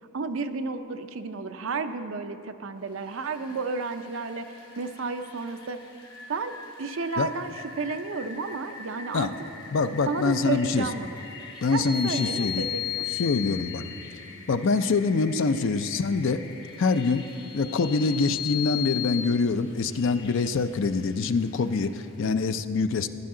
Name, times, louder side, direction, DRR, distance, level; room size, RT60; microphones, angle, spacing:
voice 1, 0.1-4.5 4.8-5.8 6.3-9.3 10.1-11.2 11.7-13.1, right 4 dB, 70° right, 8 dB, 0.5 m, -32 dB
Rain, 2.8-22.3, left 3 dB, 80° left, 2.5 m, -47 dB
voice 2, 9.7-10.9 11.6-12.7 13.2-13.8 14.5-16.4 16.8-17.3 17.5-23.1, left 4 dB, 60° left, 11 dB, 0.4 m, -25 dB
sound 1, 11.6-14.1 17.1-19.2, left 11 dB, 5° right, 1.4 m, -33 dB
15.0 x 10.5 x 3.8 m, 2.7 s
head